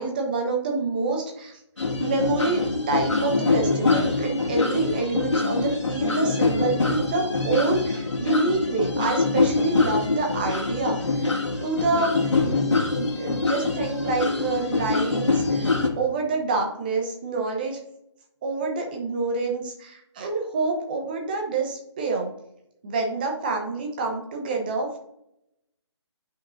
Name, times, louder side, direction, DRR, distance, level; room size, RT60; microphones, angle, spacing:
voice 1, 0.0-1.6 2.0-11.3 11.6-12.6 12.9-17.8 18.4-22.3 22.8-25.0, right 3 dB, 20° right, 2 dB, 1.0 m, -27 dB
sound 1, 1.8-15.9, left 3 dB, 75° left, 1.9 m, -24 dB
9.6 x 5.7 x 2.6 m, 0.79 s
hypercardioid pair, 170°, 15 cm